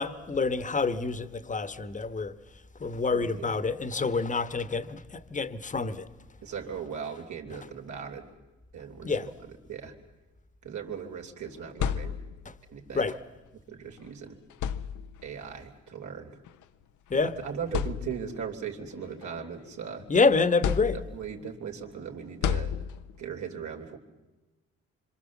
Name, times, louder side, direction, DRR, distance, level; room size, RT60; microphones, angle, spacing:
voice 1, 0.0-2.3 2.8-6.1 9.0-9.3 12.4-12.5 12.9-13.2 17.1-17.3 20.1-21.0, left 4 dB, 25° left, 1.3 m, -27 dB
voice 2, 3.1-3.6 6.4-8.3 8.7-9.3 9.7-9.9 10.6-12.2 12.7-13.1 13.7-14.4 15.2-16.4 17.2-20.0 20.9-22.7 23.2-24.0, right 7 dB, 70° right, 3.3 m, -38 dB
sound 1, 11.5-12.6 13.9-14.0 14.5-15.4 16.5-16.6 17.2-17.3 17.7-18.5 19.0-20.0 20.6-21.4 22.4-23.3, left 8 dB, 80° left, 0.9 m, -32 dB
26.0 x 25.0 x 7.3 m
cardioid pair, 90°, 30 cm